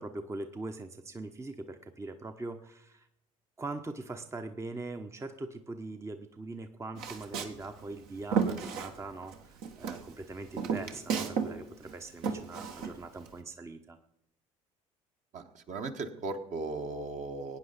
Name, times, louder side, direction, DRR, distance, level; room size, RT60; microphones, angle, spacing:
voice 1, 0.0-3.1 3.6-14.0, right 2 dB, 15° right, 7 dB, 0.9 m, -42 dB
Walk footsteps, 7.0-9.4 9.6-11.5 11.8-13.3, right 6 dB, 60° right, 1.5 m, -33 dB
voice 2, 15.3-17.6, right 3 dB, 45° right, 6 dB, 1.4 m, -37 dB
21.5 x 9.3 x 4.1 m, 0.79 s
figure-of-eight pair, 60°, 18 cm